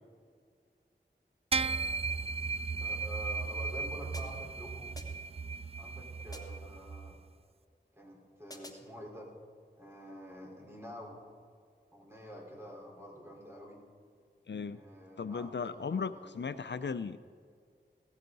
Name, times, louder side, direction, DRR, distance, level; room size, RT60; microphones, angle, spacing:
sound 1, 1.5-7.1, right 4 dB, 35° right, 0.4 m, -36 dB
voice 1, 2.8-4.9 5.8-7.2 7.9-9.3 9.8-11.2 11.9-13.8 14.7-16.4, equal, 15° right, -2 dB, 4.3 m, -48 dB
sound 2, 4.1-4.6 5.0-5.4 6.3-6.7 8.5-9.0, left 1 dB, 20° left, 1.4 m, -51 dB
voice 2, 14.5-14.8 15.2-17.2, left 5 dB, 70° left, 12 dB, 0.5 m, -36 dB
17.5 x 15.0 x 4.0 m, 2.1 s
wide cardioid pair, 45°, 19 cm